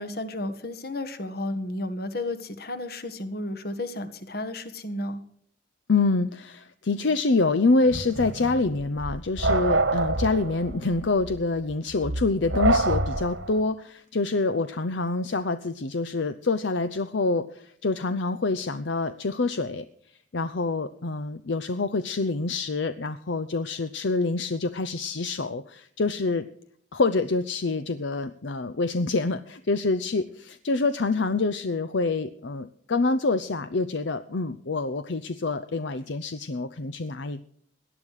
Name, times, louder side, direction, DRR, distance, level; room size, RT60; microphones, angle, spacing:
voice 1, 0.0-5.2, left 1 dB, 55° left, 11 dB, 1.6 m, -33 dB
voice 2, 5.9-19.8 20.3-26.4 26.9-37.4, left 3 dB, 70° left, 12 dB, 0.7 m, -26 dB
sound 1, 7.9-13.6, right 2 dB, 85° right, 1.9 m, -27 dB
18.0 x 11.0 x 4.8 m, 0.64 s
head